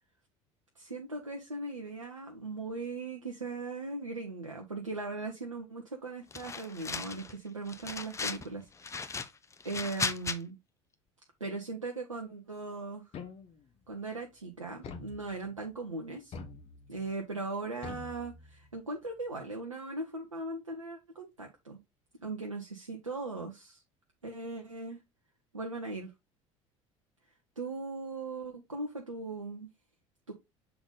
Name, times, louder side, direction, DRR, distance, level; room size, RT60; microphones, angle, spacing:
voice 1, 0.8-9.3 9.6-10.5 11.4-13.1 13.9-16.3 16.9-21.8 22.2-23.8 24.2-25.0 25.5-26.1 27.6-29.7 30.3-30.4, right 3 dB, 85° right, 1 dB, 0.8 m, -39 dB
sound 1, 6.3-7.3 7.7-8.5 8.8-10.4, left 4 dB, 20° left, 0.7 m, -36 dB
sound 2, 13.1-13.8 14.8-15.7 16.3-17.1 17.8-18.8, left 4 dB, 40° left, 1.2 m, -46 dB
6.9 x 3.8 x 3.9 m, 0.22 s
figure-of-eight pair, 65°, 16 cm